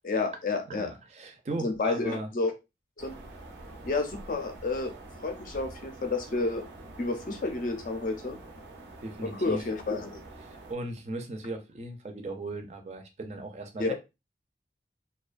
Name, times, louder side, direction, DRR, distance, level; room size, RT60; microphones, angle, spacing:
voice 1, 0.0-0.9 1.6-2.5 3.0-3.1 3.8-4.9 5.2-6.6 7.0-8.4 9.2-10.2 13.8-13.9, left 3 dB, 45° left, 5 dB, 0.4 m, -30 dB
voice 2, 0.7-2.3 9.0-9.6 10.4-13.9, right 2 dB, 40° right, 5 dB, 0.4 m, -37 dB
sound 1, 3.0-10.7, right 2 dB, 85° right, 0.6 m, -47 dB
2.3 x 2.2 x 2.4 m, 0.25 s
head